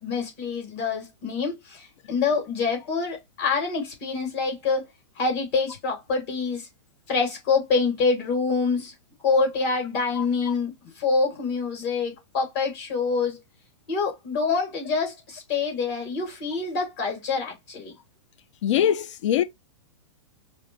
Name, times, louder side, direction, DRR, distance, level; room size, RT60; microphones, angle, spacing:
voice 1, 0.0-4.8 5.2-6.7 7.1-8.9 9.2-10.7 11.0-13.4 13.9-17.9, left 4 dB, 50° left, 2.6 m, -26 dB
voice 2, 18.6-19.4, left 10 dB, 70° left, 0.4 m, -22 dB
5.0 x 2.2 x 3.0 m
hypercardioid pair, 135°, 16 cm